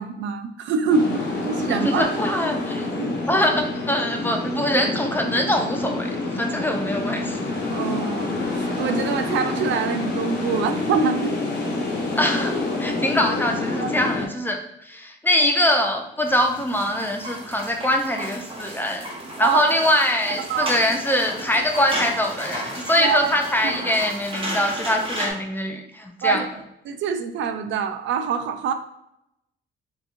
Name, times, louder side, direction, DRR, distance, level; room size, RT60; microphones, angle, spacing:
voice 1, 0.0-2.1 3.0-3.2 7.7-11.4 13.8-13.9 19.4-19.6 20.5-20.8 23.0-23.3 23.6-23.8 26.2-26.5 26.9-28.7, right 6 dB, 70° right, 8 dB, 0.4 m, -25 dB
sound 1, 0.9-14.3, left 2 dB, 55° left, 1.1 m, -27 dB
voice 2, 1.7-2.9 3.3-7.5 12.2-19.1 19.4-26.4, left 1 dB, 10° left, 3 dB, 0.5 m, -23 dB
sound 2, 16.2-25.3, equal, 25° right, 1.1 m, -33 dB
3.6 x 2.9 x 2.5 m, 0.82 s
cardioid pair, 90°, 20 cm